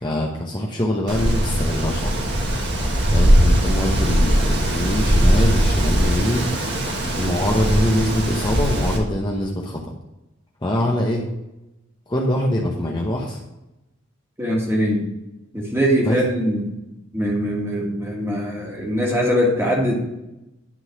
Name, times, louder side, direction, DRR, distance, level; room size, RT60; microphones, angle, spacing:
voice 1, 0.0-2.2 3.1-6.5 7.2-9.8 10.6-11.2 12.1-13.4 16.0-16.2, left 1 dB, 20° left, -1 dB, 0.8 m, -23 dB
Wind, 1.1-9.0, equal, 55° right, 1.6 m, -19 dB
voice 2, 14.4-15.1 15.5-16.7 17.1-20.0, equal, 15° right, -2 dB, 1.7 m, -22 dB
11.0 x 3.9 x 5.8 m, 0.95 s
head